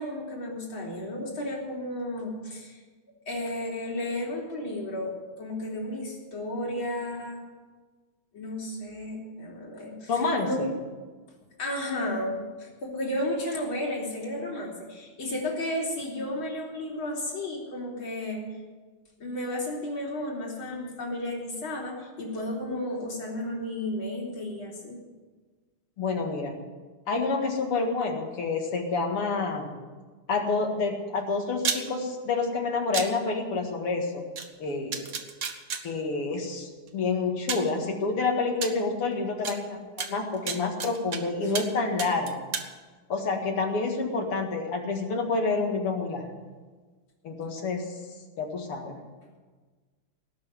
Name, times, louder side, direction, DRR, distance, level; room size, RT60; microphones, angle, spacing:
voice 1, 0.0-2.8 3.3-7.4 8.3-10.1 10.4-10.7 11.6-18.4 19.2-25.0, left 1 dB, 65° left, -2 dB, 3.9 m, -33 dB
voice 2, 10.1-10.7 26.0-26.6 27.1-29.7 30.3-34.2 34.6-35.1 35.8-42.4 43.1-46.3 47.2-47.9 48.4-49.0, left 3 dB, 85° left, 2 dB, 2.8 m, -28 dB
Metal pieces colliding with each other, 31.6-31.8 32.9-33.1 34.4-34.5 34.9-35.8 36.9-37.0 37.5-37.7 38.6-38.7 39.4-39.5 40.0-41.2 41.5-41.7 42.0-42.7, right 6 dB, 50° right, 1.3 m, -30 dB
18.5 x 6.1 x 9.8 m, 1.4 s
omnidirectional pair, 2.4 m